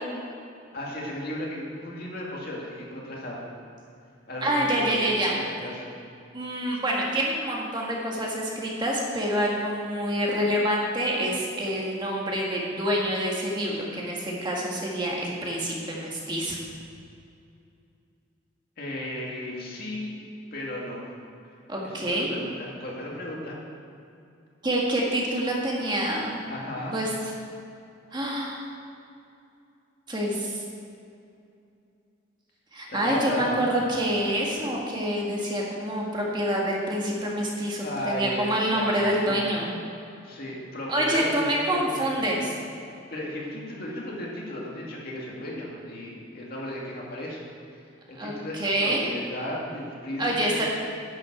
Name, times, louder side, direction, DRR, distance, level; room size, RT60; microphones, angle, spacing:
voice 1, 0.7-3.5 4.3-5.9 18.8-20.2 20.5-21.0 21.8-23.6 26.5-26.9 32.9-33.7 37.8-38.9 39.2-39.4 40.2-42.3 42.9-47.4 48.1-50.7, left 1 dB, 50° left, -3 dB, 2.4 m, -35 dB
voice 2, 4.4-5.4 6.3-16.6 21.7-22.3 24.6-26.4 26.9-27.1 28.1-28.6 30.1-30.6 32.7-39.7 40.9-42.5 48.2-49.1 50.2-50.7, equal, 20° right, -3 dB, 1.8 m, -27 dB
11.0 x 7.7 x 7.8 m, 2.6 s
head